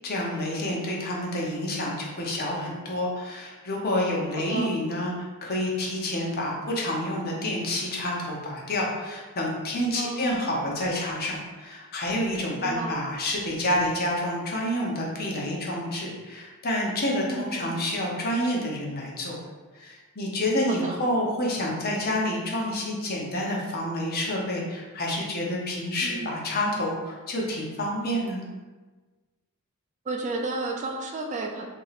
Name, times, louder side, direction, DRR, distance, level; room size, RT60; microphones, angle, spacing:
voice 1, 0.0-19.4 19.7-28.4, left 1 dB, 45° left, -3 dB, 0.8 m, -28 dB
voice 2, 4.3-4.7 9.9-10.4 12.6-12.9 17.3-17.7 20.7-21.0 26.0-26.4 30.0-31.7, right 3 dB, 35° right, 2 dB, 0.3 m, -32 dB
2.9 x 2.8 x 4.0 m, 1.3 s
head